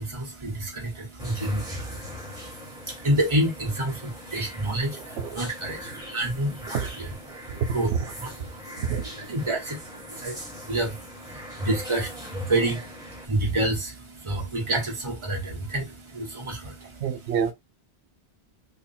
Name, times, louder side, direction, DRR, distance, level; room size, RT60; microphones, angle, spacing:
voice 1, 0.0-6.8 7.3-7.9 8.2-8.8 9.3-17.0, right 1 dB, 30° right, 1.2 m, -29 dB
sound 1, 1.2-13.3, left 1 dB, 5° right, 1.3 m, -41 dB
voice 2, 4.9-5.4 5.7-6.1 6.7-6.9 7.3-8.1 8.8-9.1 17.0-17.5, right 7 dB, 85° right, 0.9 m, -29 dB
3.4 x 2.3 x 4.1 m
omnidirectional pair, 1.1 m